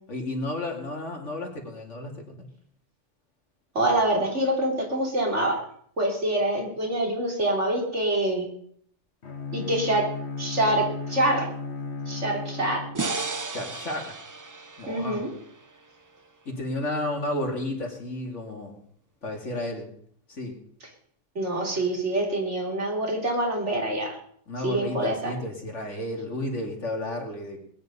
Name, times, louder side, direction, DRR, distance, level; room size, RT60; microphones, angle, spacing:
voice 1, 0.1-2.5 13.5-14.2 14.8-15.2 16.4-18.7 19.2-19.9 20.3-20.6 24.5-27.6, left 1 dB, 90° left, 1 dB, 3.0 m, -32 dB
voice 2, 3.7-5.6 6.0-8.5 9.5-10.1 10.4-11.5 12.1-12.8 14.9-15.3 21.4-24.2 24.6-25.3, right 1 dB, 75° right, 0 dB, 3.9 m, -25 dB
Bowed string instrument, 9.2-13.4, left 3 dB, 65° left, 1.6 m, -35 dB
sound 1, 12.9-16.2, right 3 dB, 25° right, 0.5 m, -34 dB
20.5 x 9.4 x 5.5 m, 0.63 s
omnidirectional pair, 1.2 m